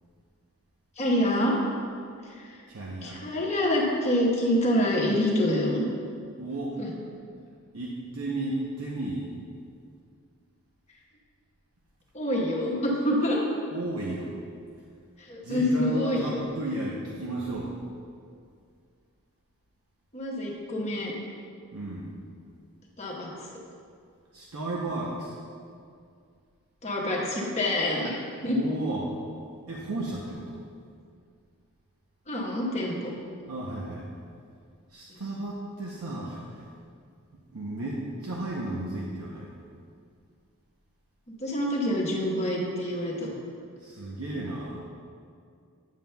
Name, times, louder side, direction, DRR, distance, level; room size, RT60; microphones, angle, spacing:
voice 1, 1.0-1.6 2.2-2.6 3.0-5.8 6.8-6.9 12.1-13.4 15.2-16.5 20.1-21.1 23.0-23.3 26.8-28.2 28.4-28.6 32.3-33.1 35.1-35.2 41.3-43.3, left 1 dB, 30° left, -2 dB, 1.0 m, -26 dB
voice 2, 2.7-3.2 6.4-6.8 7.7-9.3 13.7-14.4 15.4-17.8 21.7-22.1 24.3-25.4 28.4-29.1 29.7-30.6 33.5-34.1 34.9-36.7 37.5-39.5 43.8-44.8, right 2 dB, 70° right, -4 dB, 0.7 m, -34 dB
9.1 x 7.1 x 2.2 m, 2.3 s
head